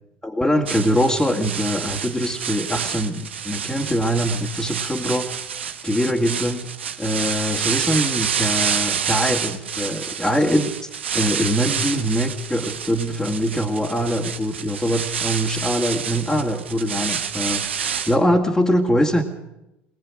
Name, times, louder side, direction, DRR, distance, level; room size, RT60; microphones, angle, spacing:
voice 1, 0.2-5.3 5.8-6.7 7.0-19.2, equal, 10° left, -2 dB, 2.5 m, -23 dB
sound 1, 0.7-18.2, right 7 dB, 85° right, 1.3 m, -28 dB
21.0 x 21.0 x 6.4 m, 0.90 s
hypercardioid pair, 70°, 6 cm